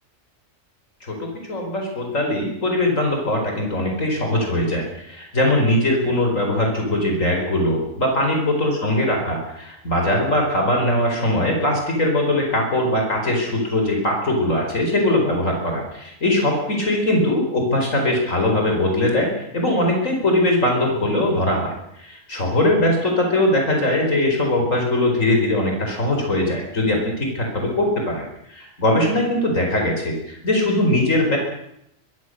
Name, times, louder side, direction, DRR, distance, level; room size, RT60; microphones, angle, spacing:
voice 1, 1.0-21.7 22.0-28.2 28.5-31.4, left 1 dB, 80° left, 2 dB, 5.0 m, -21 dB
23.5 x 22.0 x 6.6 m, 0.77 s
omnidirectional pair, 1.3 m